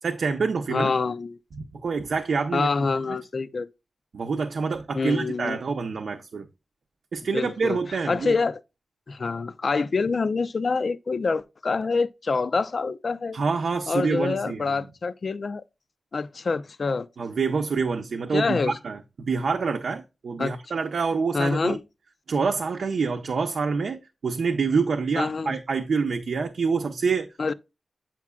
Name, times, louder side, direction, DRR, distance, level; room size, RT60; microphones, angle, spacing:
voice 1, 0.0-0.9 1.6-3.2 4.1-6.5 7.1-8.3 13.3-14.9 17.2-21.8 22.3-27.3, right 5 dB, 80° right, 0.7 m, -27 dB
voice 2, 0.7-1.4 2.5-3.7 4.9-5.6 7.3-7.8 8.1-8.6 9.1-13.4 13.9-15.6 16.1-17.1 18.3-18.8 20.4-20.5 21.3-21.8 25.2-25.6 27.4-27.5, left 4 dB, 50° left, 0.4 m, -26 dB
8.4 x 5.9 x 2.3 m
wide cardioid pair, 160°, 0 cm